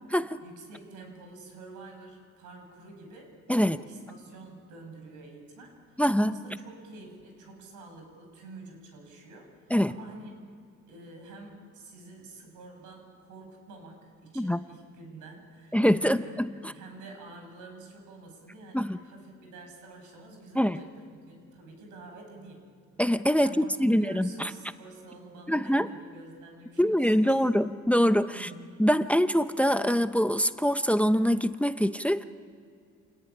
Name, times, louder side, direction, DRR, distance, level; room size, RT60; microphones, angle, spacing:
voice 1, 0.4-10.3 10.9-16.4 16.7-22.6 23.4-27.3 28.3-28.8, right 2 dB, 90° right, 3 dB, 7.8 m, -48 dB
voice 2, 6.0-6.4 9.7-9.9 14.4-14.6 15.7-16.7 18.7-19.0 20.6-20.8 23.0-24.5 25.5-25.9 26.8-28.5 28.8-32.2, equal, 5° left, 10 dB, 0.9 m, -24 dB
28.0 x 19.5 x 9.9 m, 2.3 s
cardioid pair, 90°, 30 cm